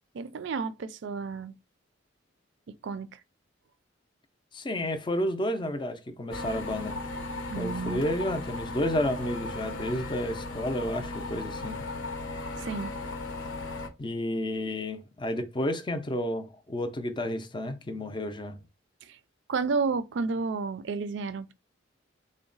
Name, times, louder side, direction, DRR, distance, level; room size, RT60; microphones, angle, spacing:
voice 1, 0.1-1.5 2.8-3.1 7.5-8.0 12.6-12.9 19.1-19.2 19.5-21.5, right 4 dB, 65° right, 0.4 m, -31 dB
voice 2, 4.5-7.0 7.6-11.9 14.0-18.6, left 1 dB, 25° left, 0.4 m, -31 dB
sound 1, 6.3-13.9, left 2 dB, 70° left, 0.7 m, -36 dB
3.8 x 2.1 x 3.8 m
head